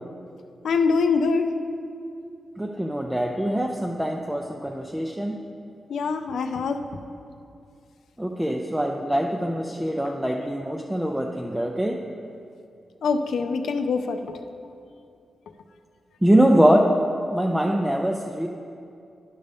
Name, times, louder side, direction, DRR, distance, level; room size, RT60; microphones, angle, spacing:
voice 1, 0.6-1.5 5.9-6.8 13.0-14.4, left 4 dB, 85° left, 7 dB, 0.4 m, -24 dB
voice 2, 2.6-5.4 8.2-12.0 16.2-16.9 17.3-18.5, right 1 dB, 5° right, 0 dB, 0.4 m, -23 dB
11.0 x 5.3 x 3.5 m, 2.5 s
wide cardioid pair, 125°, 0 cm